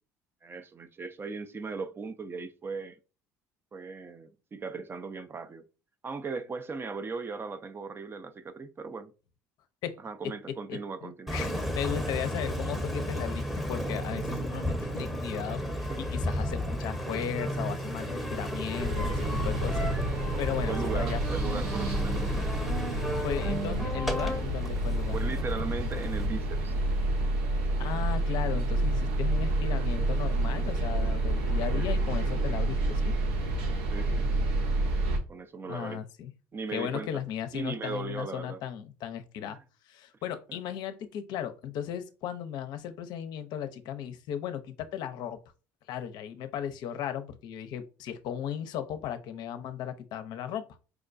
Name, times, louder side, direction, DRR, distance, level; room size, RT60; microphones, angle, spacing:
voice 1, 0.4-3.0 3.7-5.6 6.0-9.1 10.0-11.4 15.9-16.2 20.7-22.5 22.9-23.1 25.1-26.8 31.7-31.9 33.9-34.3 35.3-36.0 36.5-37.2 37.5-38.6 39.4-39.6 40.5-40.6, right 4 dB, 30° right, 0.4 m, -38 dB
voice 2, 10.7-21.2 23.2-25.2 27.8-33.1 35.7-36.3 36.7-39.6 39.9-45.4 45.9-50.6, left 9 dB, 65° left, 0.5 m, -36 dB
Engine, 11.3-26.3, equal, ahead, 0.8 m, -33 dB
sound 1, 18.7-35.2, right 1 dB, 80° right, 0.7 m, -29 dB
4.7 x 2.2 x 2.5 m
hypercardioid pair, 75°, 8 cm